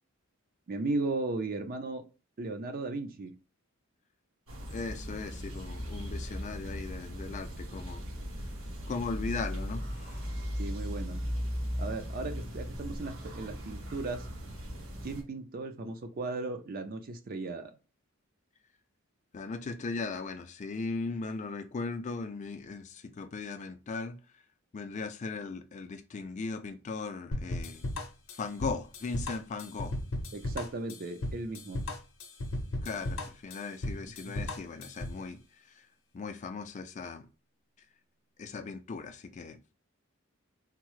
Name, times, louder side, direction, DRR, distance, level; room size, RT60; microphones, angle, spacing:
voice 1, 0.7-2.0 2.4-3.3 10.6-11.2 11.8-14.3 15.0-17.7 30.3-31.8 34.2-34.3, right 3 dB, 45° right, 0.4 m, -36 dB
sound 1, 4.5-15.2, equal, 70° right, 1.3 m, -38 dB
voice 2, 4.7-8.1 8.9-10.2 19.3-24.2 24.7-27.8 28.3-29.9 32.8-35.4 35.8-35.9 36.1-37.3 38.4-39.6, left 4 dB, 35° left, 0.3 m, -38 dB
sound 2, 27.3-35.2, left 1 dB, 70° left, 0.6 m, -36 dB
3.6 x 2.0 x 3.0 m
head